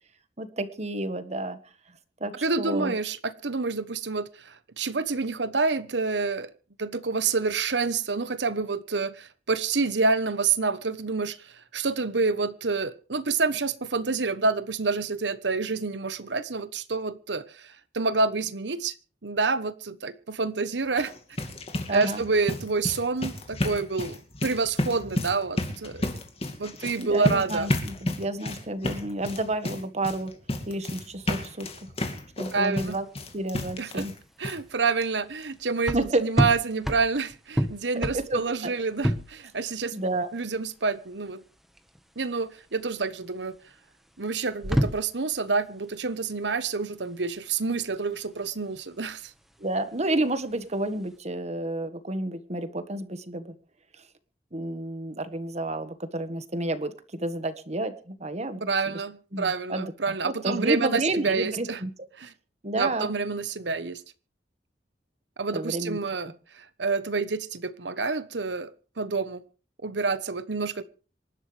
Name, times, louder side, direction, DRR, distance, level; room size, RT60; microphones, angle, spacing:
voice 1, 0.4-1.6 2.2-2.9 21.9-22.2 27.0-30.3 30.7-31.7 32.4-33.0 33.3-34.1 35.9-36.2 37.9-38.7 39.9-40.3 49.6-53.5 54.5-58.6 59.3-61.9 62.6-63.1 65.5-66.0, right 2 dB, 40° right, 10 dB, 1.6 m, -30 dB
voice 2, 2.4-6.5 6.8-18.9 19.2-21.1 21.9-26.0 26.6-27.7 32.5-33.0 33.8-34.0 34.4-40.0 40.3-41.4 42.2-43.6 44.2-49.3 58.6-61.8 62.2-62.3 62.7-64.0 65.4-69.4 69.8-70.8, right 4 dB, 85° right, 13 dB, 1.1 m, -28 dB
sound 1, 20.9-34.2 34.4-34.6 35.0-35.1 35.4-35.5, left 1 dB, 35° left, 2.3 m, -32 dB
sound 2, 33.0-51.2, equal, ahead, 1.4 m, -32 dB
27.0 x 12.0 x 3.4 m, 0.37 s
head